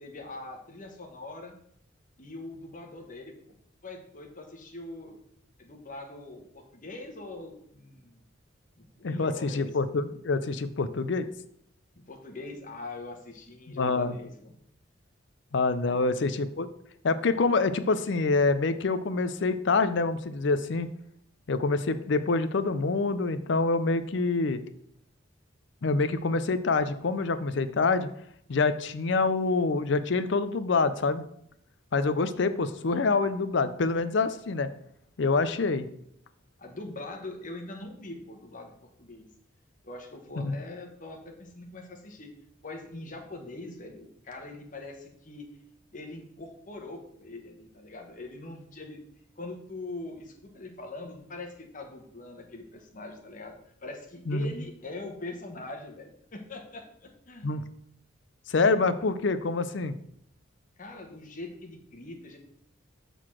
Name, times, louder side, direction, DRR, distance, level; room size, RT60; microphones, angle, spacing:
voice 1, 0.0-1.6 2.2-3.5 3.8-5.1 5.6-8.2 8.8-9.7 12.1-14.6 15.9-16.0 36.6-39.3 39.8-42.3 42.6-45.5 45.9-49.0 49.4-57.5 60.8-62.4, left 2 dB, 40° left, 2 dB, 1.2 m, -42 dB
voice 2, 9.0-11.3 13.7-14.1 15.5-16.7 17.0-20.9 21.5-24.6 25.8-28.1 28.5-31.2 31.9-34.7 35.2-35.9 40.4-40.5 54.3-54.5 57.4-57.6 58.5-59.9, left 3 dB, 65° left, 12 dB, 0.5 m, -26 dB
6.6 x 3.9 x 6.1 m, 0.71 s
head